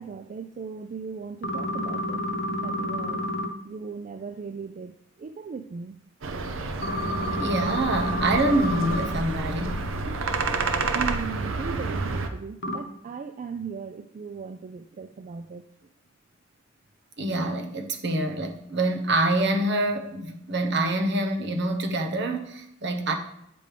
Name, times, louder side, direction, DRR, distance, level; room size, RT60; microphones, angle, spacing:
voice 1, 0.0-3.2 3.6-6.0 10.0-10.3 10.7-15.7, right 5 dB, 40° right, 8 dB, 0.3 m, -38 dB
sound 1, 1.4-3.5 6.8-9.1 12.6-12.8, left 1 dB, 60° left, 0.9 m, -29 dB
sound 2, 6.2-12.3, right 3 dB, 85° right, 0.7 m, -29 dB
voice 2, 7.3-9.9 17.2-23.1, right 2 dB, 60° right, 3 dB, 1.0 m, -26 dB
9.3 x 5.2 x 3.3 m, 0.79 s
head